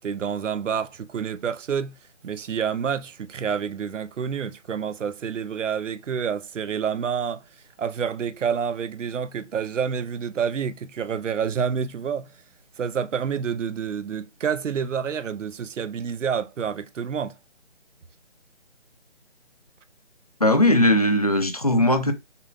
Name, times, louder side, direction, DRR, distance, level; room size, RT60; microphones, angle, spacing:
voice 1, 0.0-2.0 2.2-7.4 7.8-12.3 12.8-17.3, right 7 dB, 90° right, 0.6 m, -28 dB
voice 2, 20.4-22.1, left 1 dB, 35° left, 0.4 m, -19 dB
5.6 x 2.1 x 3.7 m
figure-of-eight pair, 165°, 36 cm